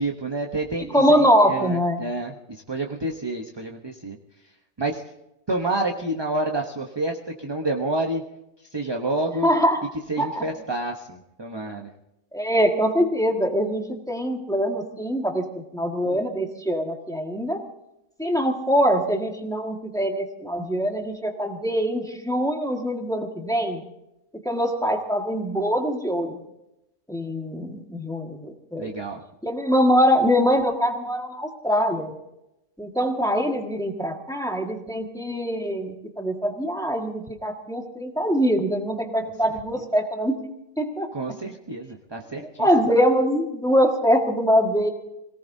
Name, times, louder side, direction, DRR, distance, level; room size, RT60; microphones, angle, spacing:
voice 1, 0.0-4.2 4.8-5.0 5.5-8.2 8.7-9.5 10.1-11.9 28.8-29.2 41.1-42.7, right 2 dB, 20° right, 1 dB, 0.8 m, -29 dB
voice 2, 0.8-2.0 9.4-9.8 10.2-10.5 12.3-17.6 18.2-23.8 24.4-26.4 27.1-28.9 29.4-32.1 32.8-40.4 40.8-41.1 42.3-44.9, equal, 5° left, 2 dB, 1.6 m, -23 dB
26.0 x 18.0 x 2.7 m, 0.88 s
omnidirectional pair, 1.5 m